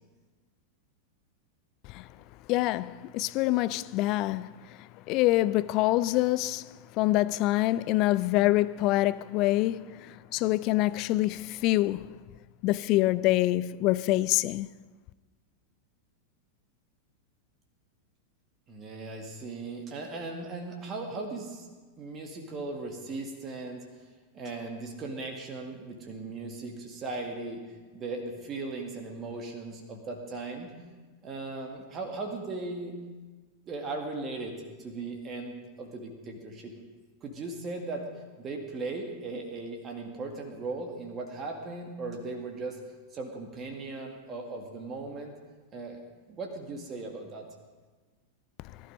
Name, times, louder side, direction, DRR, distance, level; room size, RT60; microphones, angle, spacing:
voice 1, 2.5-4.5 4.8-12.1 12.6-14.7, left 17 dB, 40° left, 0.3 m, -26 dB
voice 2, 18.7-21.7 22.0-23.8 24.3-30.7 31.2-33.0 33.7-36.8 37.2-38.1 38.4-42.8 43.1-45.3 45.7-46.0 46.3-47.4, right 3 dB, 25° right, 2.1 m, -38 dB
19.0 x 12.5 x 5.3 m
figure-of-eight pair, 90°, 0 cm